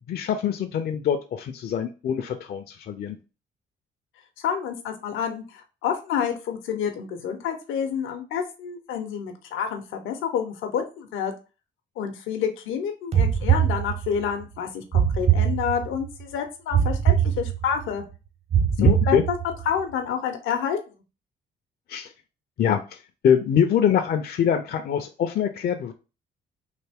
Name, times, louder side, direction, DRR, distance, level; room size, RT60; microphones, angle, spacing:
voice 1, 0.1-3.2 18.8-19.2 21.9-22.1 22.6-23.0 23.2-25.9, left 8 dB, 55° left, 6 dB, 0.5 m, -24 dB
voice 2, 4.4-11.3 12.0-18.0 18.8-19.4 19.7-20.8, left 7 dB, 85° left, 4 dB, 0.7 m, -29 dB
sound 1, 13.1-14.3 14.9-16.1 16.7-17.9 18.5-19.7, right 9 dB, 35° right, 0.5 m, -22 dB
3.3 x 2.7 x 3.4 m, 0.32 s
cardioid pair, 90°, 20 cm